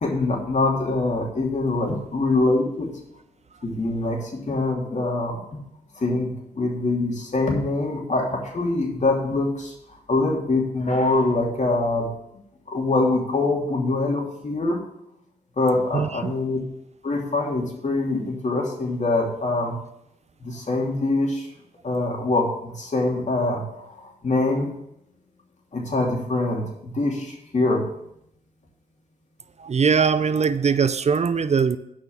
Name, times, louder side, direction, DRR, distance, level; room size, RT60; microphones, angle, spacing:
voice 1, 0.0-2.9 3.6-4.2 4.5-5.4 6.0-9.7 10.1-12.1 12.7-14.8 15.6-16.6 17.0-19.7 20.4-21.4 21.8-23.6 24.2-24.7 25.7-27.8, left 2 dB, 45° left, 0 dB, 3.0 m, -24 dB
voice 2, 15.9-16.3 29.6-31.8, right 6 dB, 40° right, 14 dB, 0.6 m, -21 dB
8.6 x 5.4 x 7.3 m, 0.79 s
supercardioid pair, 50°, 17 cm